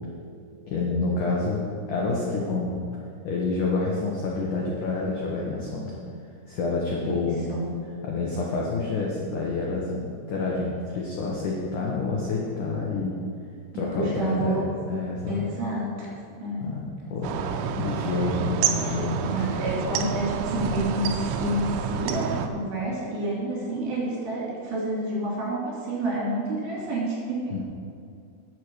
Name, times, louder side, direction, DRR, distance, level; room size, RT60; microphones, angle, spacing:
voice 1, 0.7-2.8 3.2-5.9 6.5-7.4 8.0-13.2 13.7-15.4 16.6-17.4 17.8-19.5 27.5-27.6, left 3 dB, 75° left, -3 dB, 1.8 m, -28 dB
voice 2, 7.0-7.6 13.7-14.6 15.3-16.6 19.3-27.5, right 1 dB, 70° right, -5 dB, 5.1 m, -29 dB
sound 1, 17.2-22.5, right 6 dB, 90° right, 3.1 m, -28 dB
9.9 x 7.7 x 6.4 m, 2.4 s
omnidirectional pair, 5.3 m